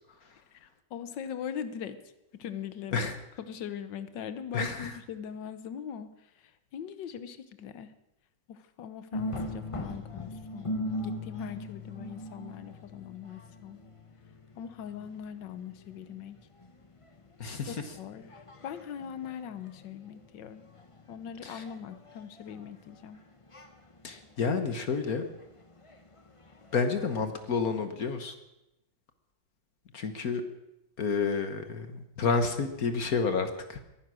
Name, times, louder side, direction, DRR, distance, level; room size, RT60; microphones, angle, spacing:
voice 1, 0.5-2.0 2.3-3.1 3.4-7.9 8.5-13.8 14.6-16.4 17.7-20.7 21.1-23.2, left 8 dB, 75° left, 12 dB, 1.7 m, -41 dB
voice 2, 4.5-4.9 17.4-17.7 21.4-21.6 24.0-25.2 26.7-28.3 29.9-30.4 31.0-33.8, left 5 dB, 55° left, 8 dB, 1.6 m, -30 dB
sound 1, 9.1-27.7, left 1 dB, 20° left, 1.0 m, -42 dB
22.0 x 10.0 x 6.3 m, 0.91 s
omnidirectional pair, 2.0 m